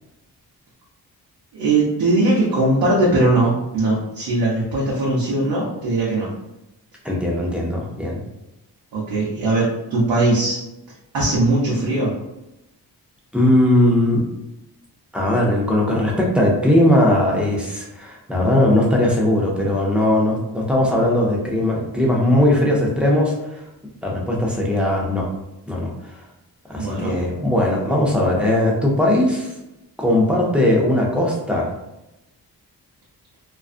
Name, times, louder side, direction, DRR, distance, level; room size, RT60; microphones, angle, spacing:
voice 1, 1.5-6.3 8.9-10.6 11.1-12.1 26.7-27.1, right 2 dB, 70° right, -5 dB, 0.7 m, -20 dB
voice 2, 7.0-8.2 13.3-14.2 15.1-23.6 24.0-25.3 25.7-25.9 26.7-29.5 30.0-31.7, left 1 dB, 5° right, -3 dB, 0.6 m, -19 dB
2.5 x 2.3 x 2.4 m, 0.93 s
wide cardioid pair, 100°, 40 cm